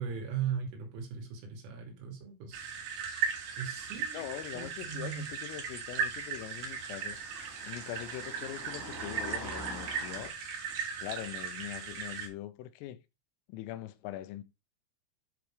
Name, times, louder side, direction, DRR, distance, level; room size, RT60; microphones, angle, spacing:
voice 1, 0.0-2.8 3.6-5.2, right 7 dB, 75° right, 5.0 m, -38 dB
sound 1, 2.5-12.3, right 6 dB, 55° right, 2.9 m, -37 dB
sound 2, 3.3-10.3, equal, 10° right, 0.8 m, -48 dB
voice 2, 4.1-7.2 7.6-10.3 11.0-13.0 13.5-14.4, left 13 dB, 85° left, 3.4 m, -42 dB
10.0 x 4.0 x 4.8 m
omnidirectional pair, 5.8 m